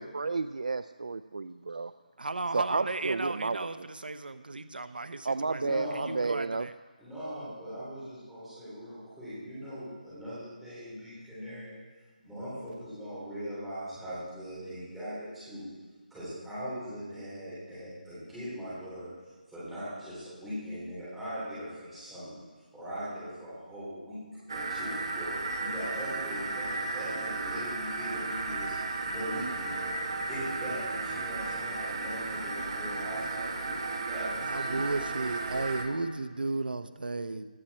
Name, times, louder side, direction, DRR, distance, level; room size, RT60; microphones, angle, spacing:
voice 1, 0.0-1.9 2.5-3.7 5.2-6.7, right 4 dB, 50° right, 13 dB, 0.4 m, -31 dB
voice 2, 2.2-6.7 34.4-37.5, right 3 dB, 80° right, 11 dB, 0.9 m, -35 dB
voice 3, 5.6-6.1 7.0-11.8 12.2-15.7 16.1-19.1 19.5-22.4 22.7-28.7 29.1-30.0 30.3-34.8, equal, ahead, -13 dB, 3.6 m, -40 dB
sound 1, 24.5-35.8, right 3 dB, 30° right, 1.5 m, -34 dB
16.5 x 12.0 x 4.3 m, 1.4 s
figure-of-eight pair, 180°, 5 cm